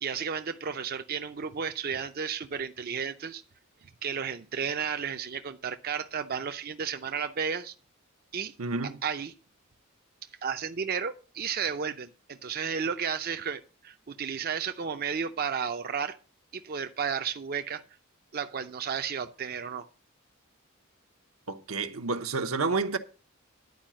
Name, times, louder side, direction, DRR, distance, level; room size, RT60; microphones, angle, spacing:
voice 1, 0.0-3.4 3.8-7.8 8.3-8.5 9.0-9.3 10.2-16.2 16.5-17.8 18.3-19.8, right 6 dB, 45° right, 0.5 m, -33 dB
voice 2, 8.6-9.0 21.5-23.0, right 4 dB, 80° right, 0.9 m, -30 dB
10.5 x 4.9 x 7.4 m
head